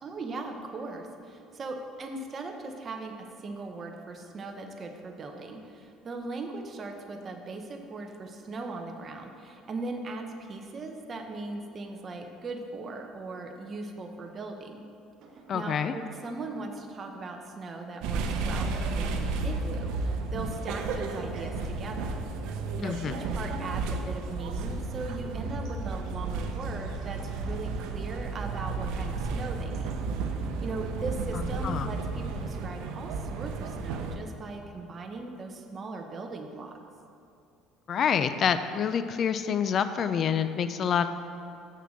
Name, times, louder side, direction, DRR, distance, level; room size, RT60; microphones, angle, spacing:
voice 1, 0.0-14.8 15.5-22.2 22.8-30.0 30.6-36.8, right 3 dB, 25° right, 3 dB, 0.8 m, -39 dB
sound 1, 15.2-15.9 16.2-16.3 17.2-17.3 17.9-19.1 21.3-21.7 22.1-22.5 23.1-23.4 24.0-24.2 25.6-30.0, right 3 dB, 50° right, 1.4 m, -52 dB
voice 2, 15.5-15.9 22.8-23.1 31.6-31.9 37.9-41.1, left 7 dB, 35° left, 11 dB, 0.3 m, -27 dB
sound 2, 18.0-34.2, right 3 dB, 75° right, 0.7 m, -33 dB
7.5 x 6.7 x 6.4 m, 2.6 s
cardioid pair, 170°, 0 cm